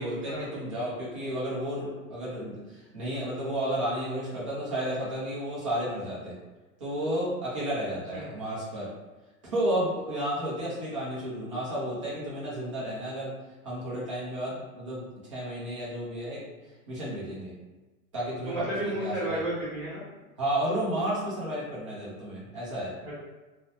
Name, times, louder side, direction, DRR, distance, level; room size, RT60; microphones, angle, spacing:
voice 1, 0.0-6.3 6.8-8.9 9.4-13.3 13.6-15.0 15.3-16.4 16.9-17.5 18.1-19.4 20.4-23.0, right 1 dB, 25° right, -7 dB, 0.4 m, -32 dB
voice 2, 18.4-20.0 23.0-23.1, right 1 dB, 5° left, -11 dB, 1.0 m, -32 dB
2.9 x 2.0 x 2.6 m, 1.2 s
supercardioid pair, 175°, 43 cm